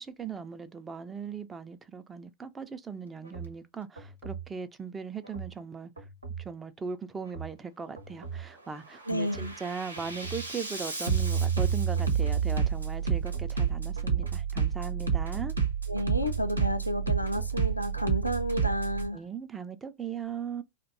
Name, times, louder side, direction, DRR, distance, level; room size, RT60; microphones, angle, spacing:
voice 1, 0.0-6.1 6.4-15.6 19.1-20.6, right 5 dB, 15° right, 0.3 m, -39 dB
Bass drum, 3.2-3.5 4.0-4.4 5.2-5.5 6.0-6.4 7.2-7.5 8.0-8.5 8.9-19.1, right 6 dB, 85° right, 0.7 m, -30 dB
voice 2, 9.1-9.6 15.9-19.2, equal, 90° left, 0.4 m, -31 dB
2.5 x 2.2 x 2.5 m
figure-of-eight pair, 90°, 0 cm